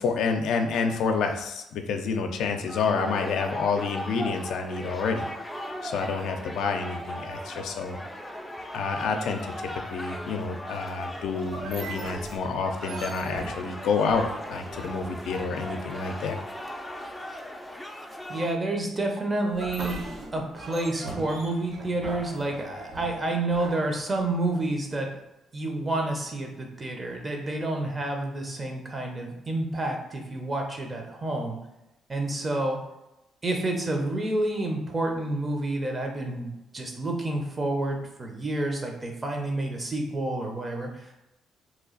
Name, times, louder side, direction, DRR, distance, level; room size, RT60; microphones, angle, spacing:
voice 1, 0.0-5.3 5.8-8.0 8.7-9.4 9.9-16.4, left 5 dB, 80° left, 5 dB, 0.4 m, -28 dB
sound 1, 2.7-18.5, equal, 10° left, 0.4 m, -38 dB
sound 2, 11.4-15.7 19.5-24.6, right 2 dB, 70° right, 1.0 m, -39 dB
voice 2, 18.3-20.0 20.3-25.1 25.5-31.6 32.1-32.8 33.4-41.1, right 2 dB, 30° right, 2 dB, 0.8 m, -29 dB
3.0 x 2.4 x 3.9 m, 0.93 s
cardioid pair, 90°, 0 cm